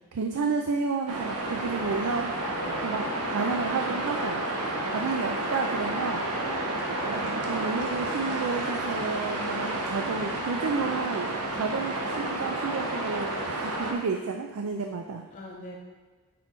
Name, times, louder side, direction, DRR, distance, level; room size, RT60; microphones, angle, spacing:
voice 1, 0.1-2.3 2.8-4.4 4.9-6.3 7.1-15.2, right 4 dB, 70° right, 4 dB, 0.4 m, -31 dB
sound 1, 1.1-13.9, right 2 dB, 85° right, 1.0 m, -31 dB
sound 2, 1.8-9.4, left 6 dB, 15° right, 0.9 m, -43 dB
voice 2, 2.5-3.0 4.8-5.2 11.5-11.9 15.3-15.8, left 1 dB, 35° left, -2 dB, 0.6 m, -44 dB
6.2 x 4.3 x 4.5 m, 1.3 s
head